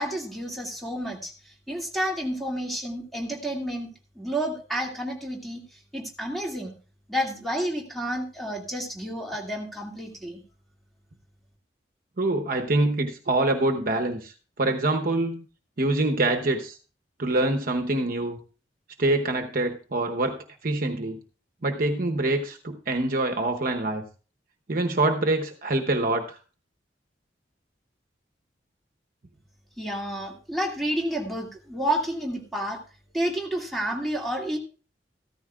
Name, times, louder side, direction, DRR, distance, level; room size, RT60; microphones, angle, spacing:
voice 1, 0.0-6.7 7.1-10.4 29.8-32.8 33.1-34.6, right 1 dB, ahead, -1 dB, 2.2 m, -30 dB
voice 2, 12.2-15.4 15.8-16.8 17.2-18.4 19.0-21.2 21.6-24.1 24.7-26.4, right 2 dB, 50° right, 5 dB, 0.9 m, -25 dB
14.0 x 13.5 x 2.4 m, 0.36 s
head